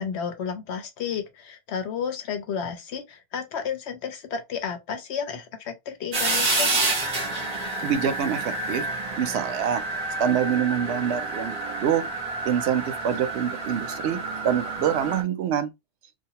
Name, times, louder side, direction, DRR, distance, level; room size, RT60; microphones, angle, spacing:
voice 1, 0.0-6.7, left 7 dB, 65° left, 0.9 m, -32 dB
sound 1, 6.1-15.2, right 2 dB, 40° right, 0.7 m, -29 dB
voice 2, 7.8-8.9 9.2-9.8 10.2-12.0 12.4-15.7, right 9 dB, 70° right, 0.8 m, -25 dB
2.5 x 2.3 x 2.7 m
omnidirectional pair, 1.3 m